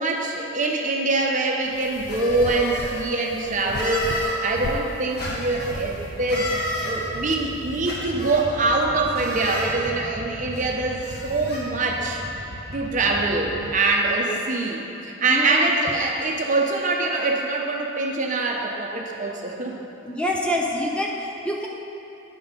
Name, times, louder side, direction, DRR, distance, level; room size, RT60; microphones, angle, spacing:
voice 1, 0.0-6.5 6.8-12.2 12.7-19.8, right 3 dB, 40° right, 0 dB, 0.8 m, -24 dB
sound 1, 1.6-8.0, left 3 dB, 80° left, 0.5 m, -38 dB
sound 2, 2.1-3.0 3.7-4.4 5.2-5.7 6.3-6.9 7.8-8.4 9.1-9.7 10.5-10.6 11.0-11.6, left 1 dB, 55° left, 1.6 m, -31 dB
sound 3, 5.2-13.7, right 1 dB, 85° right, 0.9 m, -38 dB
voice 2, 15.3-15.7 20.0-21.7, left 1 dB, 5° left, -2 dB, 0.5 m, -26 dB
9.8 x 5.4 x 5.2 m, 3.0 s
head